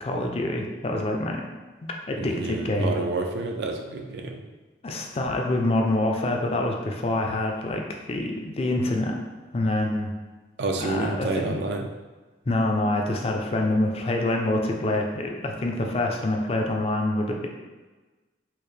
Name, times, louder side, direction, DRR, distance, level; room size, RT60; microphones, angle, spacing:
voice 1, 0.0-1.4 1.8-2.9 4.8-9.2 9.5-10.1 10.8-11.6 12.5-17.5, left 1 dB, 35° left, 1 dB, 0.4 m, -26 dB
voice 2, 2.1-4.4 7.3-7.4 10.6-11.9, right 3 dB, 70° right, 4 dB, 0.4 m, -29 dB
4.4 x 2.0 x 3.2 m, 1.3 s
head